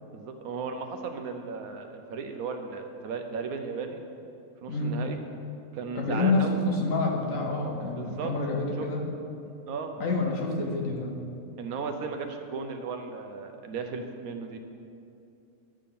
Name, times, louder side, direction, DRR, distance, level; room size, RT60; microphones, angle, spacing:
voice 1, 0.1-4.0 4.6-5.2 5.7-6.6 8.0-8.3 8.8-8.9 9.7-9.9 11.6-14.6, right 5 dB, 75° right, 5 dB, 1.1 m, -35 dB
voice 2, 5.9-9.0 10.0-11.1, left 3 dB, 65° left, 0 dB, 1.4 m, -28 dB
10.5 x 3.6 x 6.8 m, 2.6 s
omnidirectional pair, 1.6 m